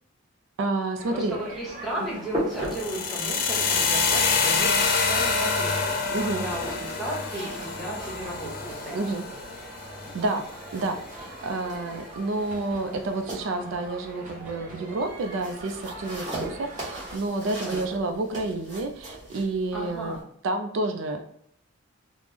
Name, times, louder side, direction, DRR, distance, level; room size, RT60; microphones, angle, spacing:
voice 1, 0.6-1.4 6.1-6.4 8.9-9.2 10.1-10.5 10.7-20.2 20.4-21.2, right 2 dB, 70° right, 6 dB, 0.3 m, -29 dB
sound 1, 0.9-17.2, right 1 dB, 40° right, 0.7 m, -43 dB
voice 2, 1.1-9.3 16.2-16.5 17.6-17.9 19.7-20.2, right 1 dB, ahead, -5 dB, 0.9 m, -35 dB
sound 2, 1.4-20.2, right 1 dB, 20° right, 1.2 m, -40 dB
sound 3, 2.6-10.7, left 4 dB, 45° left, 0.4 m, -27 dB
3.2 x 2.0 x 3.4 m, 0.65 s
head